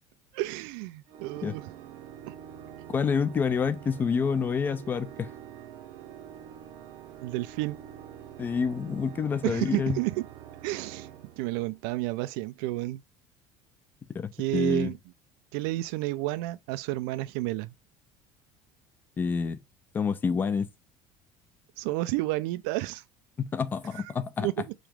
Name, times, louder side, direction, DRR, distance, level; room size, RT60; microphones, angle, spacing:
voice 1, 0.3-1.7 2.2-2.3 7.2-7.8 9.4-10.3 10.6-11.1 11.4-13.0 14.4-15.0 15.5-17.7 21.8-23.0 23.9-24.1 24.4-24.7, right 18 dB, 90° right, 0.5 m, -31 dB
Organ, 1.1-12.0, right 10 dB, 65° right, 0.8 m, -46 dB
voice 2, 2.9-5.3 8.4-10.0 14.1-14.9 19.2-19.6 19.9-20.7 23.4-24.5, left 6 dB, 15° left, 0.4 m, -28 dB
5.0 x 3.0 x 3.5 m
cardioid pair, 175°, 11 cm